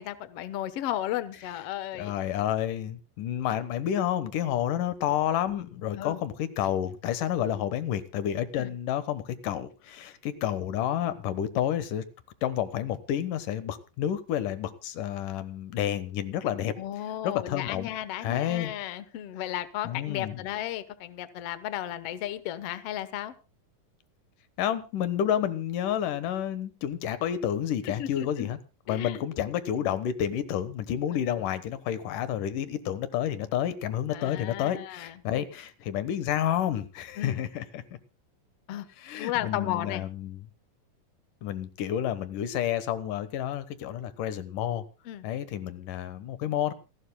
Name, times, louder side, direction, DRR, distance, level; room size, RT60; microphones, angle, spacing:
voice 1, 0.0-2.2 5.9-6.2 8.6-8.7 16.8-23.3 27.9-28.5 28.9-29.2 34.1-35.2 37.2-37.4 38.7-38.9 39.1-40.1 45.1-45.3, left 12 dB, 60° left, 12 dB, 1.7 m, -34 dB
voice 2, 2.0-12.0 12.4-16.7 17.2-17.9 18.2-18.7 19.8-20.4 24.6-28.6 28.9-37.8 39.0-40.4 41.4-44.8 45.2-46.7, left 10 dB, 80° left, 13 dB, 2.8 m, -30 dB
27.5 x 11.5 x 2.2 m, 0.30 s
omnidirectional pair, 3.7 m